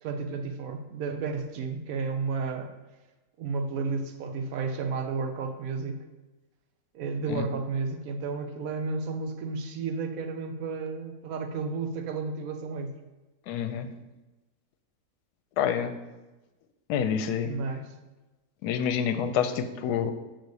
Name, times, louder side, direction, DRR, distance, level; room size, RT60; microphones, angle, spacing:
voice 1, 0.0-2.7 3.4-6.1 6.9-12.9 15.8-15.9 17.4-17.9, right 4 dB, 65° right, 6 dB, 1.0 m, -32 dB
voice 2, 13.5-13.9 15.6-16.0 16.9-17.5 18.6-20.1, left 8 dB, 80° left, 9 dB, 1.1 m, -27 dB
6.7 x 4.0 x 4.7 m, 1.1 s
omnidirectional pair, 1.8 m